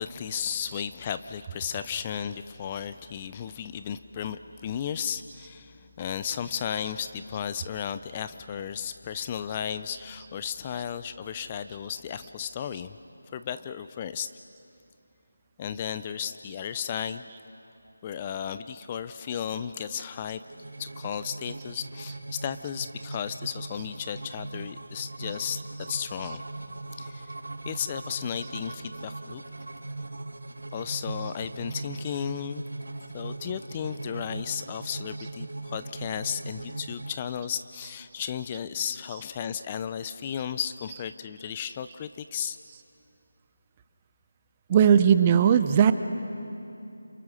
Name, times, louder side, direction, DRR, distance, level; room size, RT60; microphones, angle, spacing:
voice 1, 0.0-13.0 13.3-14.3 15.6-17.3 18.0-20.4 20.8-26.4 26.9-27.3 27.7-29.4 30.7-32.6 33.1-42.6, left 8 dB, 20° left, 12 dB, 0.5 m, -34 dB
sound 1, 20.4-37.1, right 2 dB, 80° right, 1.7 m, -39 dB
voice 2, 44.7-45.9, right 8 dB, 20° right, 11 dB, 0.7 m, -18 dB
29.5 x 27.5 x 6.4 m, 2.8 s
figure-of-eight pair, 165°, 0 cm